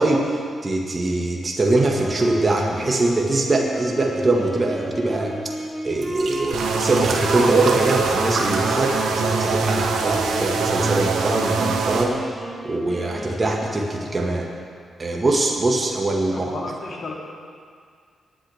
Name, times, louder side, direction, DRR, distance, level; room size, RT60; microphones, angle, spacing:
voice 1, 0.0-5.4 5.8-12.2 12.6-14.5 15.0-16.5, right 2 dB, 35° right, -1 dB, 1.9 m, -22 dB
Wind instrument woodwind instrument, 1.9-14.3, equal, 5° right, 2.8 m, -32 dB
sound 1, 5.3-5.4 5.9-9.4 9.7-10.2 10.9-11.0, right 2 dB, 65° right, 1.8 m, -30 dB
sound 2, 6.5-12.0, right 5 dB, 80° right, 1.0 m, -24 dB
voice 2, 16.3-17.1, left 3 dB, 60° left, -2 dB, 2.6 m, -33 dB
19.5 x 9.2 x 3.6 m, 2.1 s
supercardioid pair, 45°, 0 cm